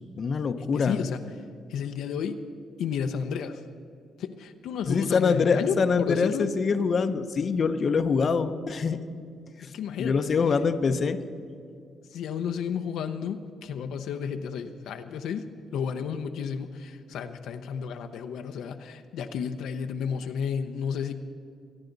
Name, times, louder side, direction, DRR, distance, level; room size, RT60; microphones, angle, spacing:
voice 1, 0.2-1.0 4.9-9.0 9.6-9.7 10.0-11.2, left 5 dB, 45° left, 9 dB, 0.7 m, -24 dB
voice 2, 0.7-1.2 1.7-2.4 2.8-3.6 4.2-6.4 9.6-10.3 12.1-15.5 15.7-21.1, left 7 dB, 80° left, 6 dB, 0.7 m, -32 dB
24.0 x 9.8 x 4.0 m, 2.4 s
cardioid pair, 90°, 0 cm